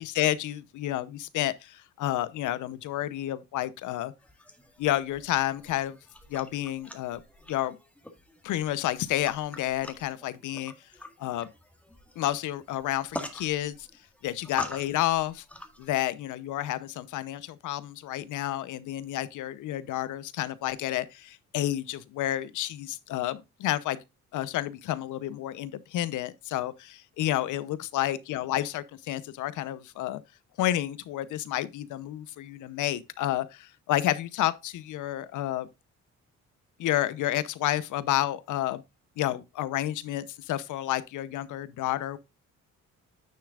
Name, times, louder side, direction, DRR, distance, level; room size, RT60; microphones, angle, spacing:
voice 1, 0.0-4.1 4.8-6.0 6.3-7.2 7.5-7.8 8.4-10.7 11.2-11.5 12.2-13.9 14.2-15.4 15.8-24.0 24.3-30.2 30.6-35.7 36.8-38.8 39.2-42.2, left 13 dB, 80° left, 0.8 m, -30 dB
sound 1, 4.2-16.0, left 1 dB, 5° left, 1.7 m, -45 dB
9.8 x 6.6 x 2.4 m
cardioid pair, 90°, 30 cm